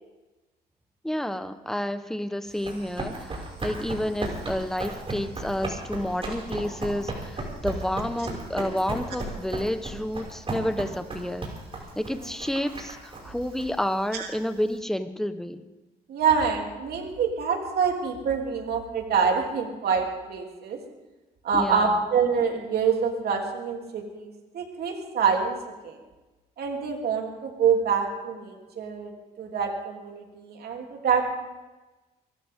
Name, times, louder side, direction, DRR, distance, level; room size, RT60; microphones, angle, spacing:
voice 1, 1.0-11.5 11.9-15.6 21.5-21.9, left 1 dB, ahead, 9 dB, 1.2 m, -30 dB
Run, 2.5-14.7, right 2 dB, 35° right, 6.0 m, -36 dB
voice 2, 16.1-20.8 21.4-25.6 25.8-26.0 26.6-29.1 29.4-31.3, right 6 dB, 70° right, 1 dB, 3.3 m, -26 dB
24.0 x 14.0 x 3.8 m, 1.1 s
cardioid pair, 75°, 17 cm